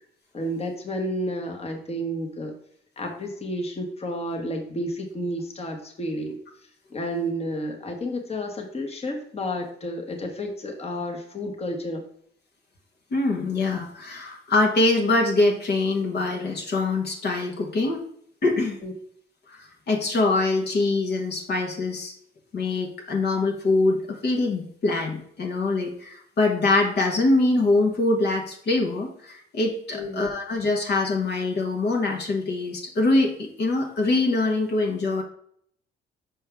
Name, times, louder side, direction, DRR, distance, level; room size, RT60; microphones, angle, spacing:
voice 1, 0.3-2.5 3.0-6.4 6.9-12.0 18.8-18.9 29.9-30.3, equal, 30° left, 2 dB, 1.2 m, -31 dB
voice 2, 13.1-18.0 18.4-18.8 19.5-22.1 22.5-35.2, left 2 dB, 55° left, 1 dB, 1.2 m, -24 dB
6.0 x 4.5 x 3.5 m, 0.66 s
cardioid pair, 90°, 20 cm